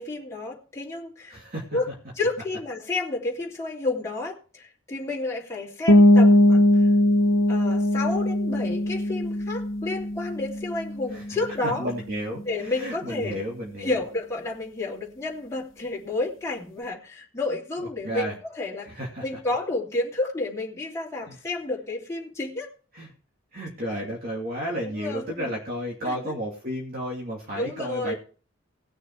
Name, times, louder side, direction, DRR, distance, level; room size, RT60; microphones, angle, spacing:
voice 1, 0.0-1.4 1.7-1.9 2.1-6.9 7.5-11.9 12.5-13.4 13.8-22.7 24.8-25.5 26.0-26.3 27.5-28.1, left 2 dB, 15° left, -5 dB, 3.0 m, -31 dB
voice 2, 1.3-1.6 11.1-11.2 11.6-14.0 18.0-18.4 18.8-19.2 21.3-21.4 22.9-23.1 23.5-28.1, equal, 45° right, -2 dB, 2.5 m, -32 dB
sound 1, 5.9-11.5, left 1 dB, 70° left, 1.2 m, -20 dB
18.5 x 6.6 x 4.6 m, 0.39 s
head